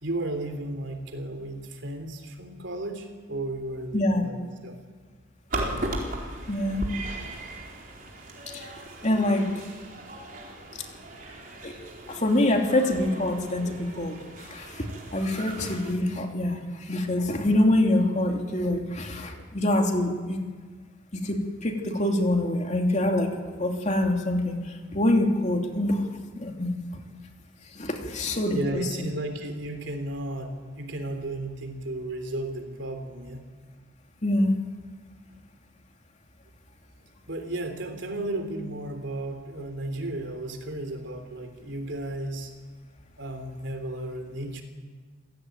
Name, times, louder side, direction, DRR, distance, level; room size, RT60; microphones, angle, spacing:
voice 1, 0.0-4.8 28.5-33.4 37.3-42.5 43.2-44.6, right 1 dB, 65° right, 6 dB, 3.5 m, -34 dB
voice 2, 3.9-4.3 6.5-6.9 8.5-8.7 9.0-9.5 11.6-11.7 12.1-14.8 15.1-16.6 16.9-20.4 21.1-24.6 24.9-26.0 26.4-26.7 27.8-28.8 34.2-34.6, left 1 dB, 35° left, 3 dB, 2.9 m, -25 dB
sound 1, 5.5-15.9, right 1 dB, 45° right, 4.3 m, -37 dB
28.0 x 16.5 x 9.4 m, 1.5 s
head